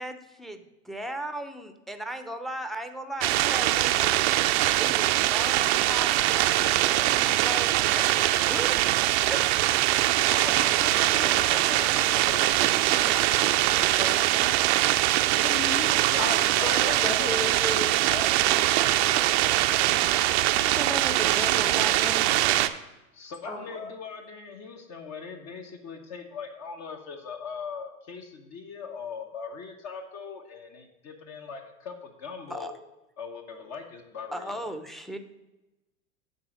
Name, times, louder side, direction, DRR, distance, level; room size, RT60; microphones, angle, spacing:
voice 1, 0.0-4.2 4.8-9.9 20.7-22.5 32.5-32.7 34.3-35.2, right 1 dB, ahead, 7 dB, 0.7 m, -37 dB
sound 1, 3.2-22.7, right 15 dB, 55° right, 0.6 m, -23 dB
voice 2, 10.3-14.5 15.3-17.6 23.1-32.7 33.2-34.7, left 5 dB, 40° left, 4 dB, 1.1 m, -40 dB
voice 3, 16.2-19.2 23.4-23.9, left 2 dB, 80° left, -1 dB, 2.9 m, -34 dB
9.5 x 4.0 x 6.4 m, 0.99 s
hypercardioid pair, 90°, 40 cm